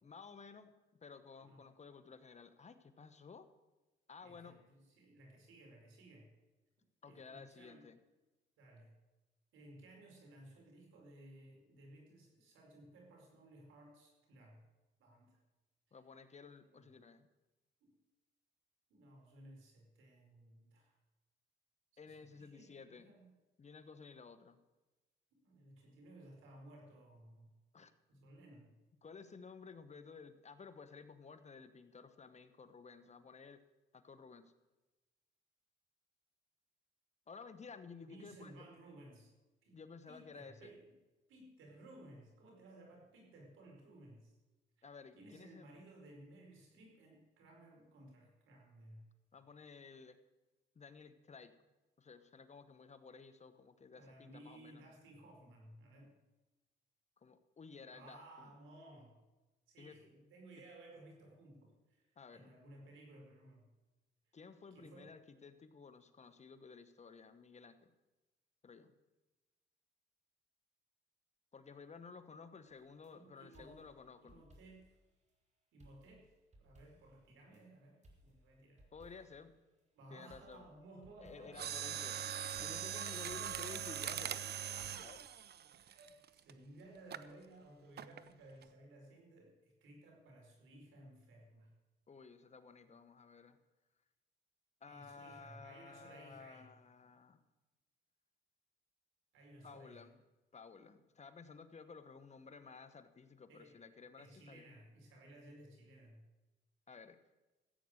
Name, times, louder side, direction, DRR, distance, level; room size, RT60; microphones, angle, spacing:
voice 1, 0.0-0.7 1.0-3.5 4.1-4.6 7.0-8.0 15.9-17.3 22.0-23.1 23.6-24.6 27.7-27.9 29.0-33.6 33.9-34.5 37.3-38.7 39.7-40.7 44.8-45.7 49.3-50.2 50.7-51.5 52.0-54.9 57.2-58.5 59.8-60.1 60.6-60.7 62.2-62.6 64.3-67.9 68.6-68.9 71.5-74.5 78.9-79.5 80.1-80.7 81.2-82.1 82.6-84.5 84.7-85.2 92.1-93.6 94.8-97.4 99.6-100.2 100.5-104.7 106.9-107.2, left 5 dB, 35° left, 10 dB, 1.2 m, -54 dB
voice 2, 4.2-6.3 7.0-7.8 8.6-8.9 9.5-14.6 15.0-15.4 15.9-16.0 16.6-17.0 17.8-17.9 18.9-21.0 22.0-23.3 25.4-27.5 28.1-28.7 38.0-39.3 39.6-39.8 40.1-40.9 41.3-44.3 44.8-49.1 53.9-56.2 57.9-59.1 59.7-63.7 64.7-65.1 73.1-73.9 74.3-74.9 75.7-76.3 76.6-78.9 79.9-82.2 85.7-91.7 94.9-96.7 99.3-100.1 103.5-103.8 104.2-106.2, right 1 dB, 85° right, 1 dB, 4.8 m, -58 dB
sound 1, 72.7-73.1 73.5-75.0 75.3-75.4 75.8-77.6 78.0-79.5 80.3-82.1 82.5-84.0 84.8-85.3, equal, 35° right, 3.3 m, -65 dB
Mechanisms, 81.5-86.5 87.1-87.3 88.0-88.3 88.6-88.7, right 9 dB, 55° right, 0.7 m, -42 dB
15.5 x 8.6 x 6.5 m, 1.1 s
cardioid pair, 90°, 20 cm